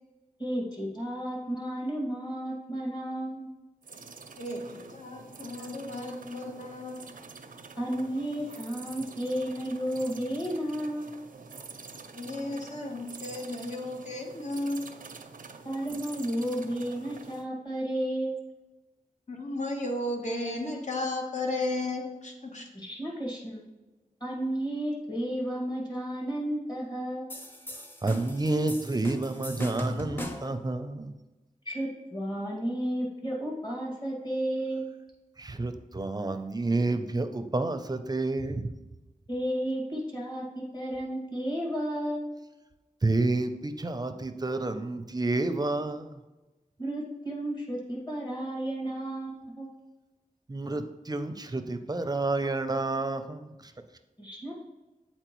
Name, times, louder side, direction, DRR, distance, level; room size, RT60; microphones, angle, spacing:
voice 1, 0.4-3.5 7.8-11.2 15.6-18.4 22.7-23.6 24.2-27.3 31.7-34.9 39.3-42.4 46.8-49.7 54.2-54.5, right 1 dB, 30° left, -3 dB, 1.9 m, -32 dB
sound 1, 3.8-17.5, right 4 dB, 85° right, 0.5 m, -47 dB
voice 2, 4.4-7.0 12.1-14.9 19.3-22.6, left 2 dB, 60° left, 1 dB, 1.1 m, -34 dB
sound 2, 27.3-30.6, equal, 15° left, 0.6 m, -38 dB
voice 3, 28.0-31.1 35.4-38.7 43.0-46.2 50.5-53.7, right 2 dB, 30° right, 8 dB, 0.5 m, -29 dB
7.8 x 4.3 x 3.0 m, 1.1 s
wide cardioid pair, 75°, 14 cm